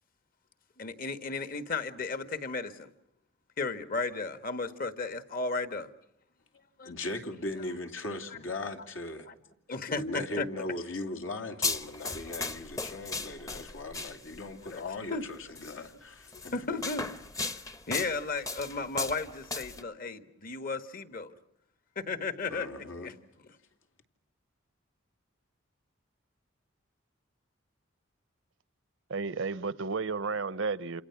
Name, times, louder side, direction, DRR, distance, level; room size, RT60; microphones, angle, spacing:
voice 1, 0.8-2.9 3.6-5.9 6.8-6.9 9.3-9.4 9.7-10.5 14.3-14.4 14.7-14.8 15.1-15.3 16.3-17.1 17.5-21.3 22.0-23.1, left 3 dB, 45° left, 1.6 m, -34 dB
voice 2, 6.8-9.3 9.9-16.5 22.5-23.2, left 2 dB, 75° left, 2.9 m, -38 dB
sound 1, 11.6-14.5 15.6-15.8 16.3-19.8, left 3 dB, 15° left, 0.9 m, -36 dB
voice 3, 29.1-31.0, right 4 dB, 70° right, 0.9 m, -32 dB
28.5 x 28.0 x 6.0 m
head